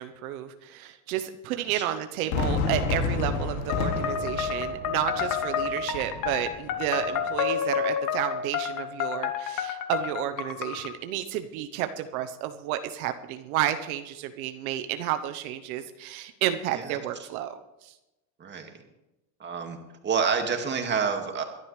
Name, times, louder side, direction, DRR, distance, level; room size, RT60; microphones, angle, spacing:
voice 1, 0.0-17.9, right 12 dB, 80° right, 9 dB, 1.1 m, -31 dB
Fireworks, 2.3-7.4, left 4 dB, 80° left, 2.7 m, -31 dB
sound 1, 3.7-10.9, left 7 dB, 50° left, 1.6 m, -30 dB
voice 2, 16.7-17.3 18.4-18.7 19.4-19.8 20.0-21.4, right 6 dB, 25° right, 4 dB, 2.2 m, -28 dB
22.5 x 11.5 x 3.3 m, 0.96 s
supercardioid pair, 125°, 42 cm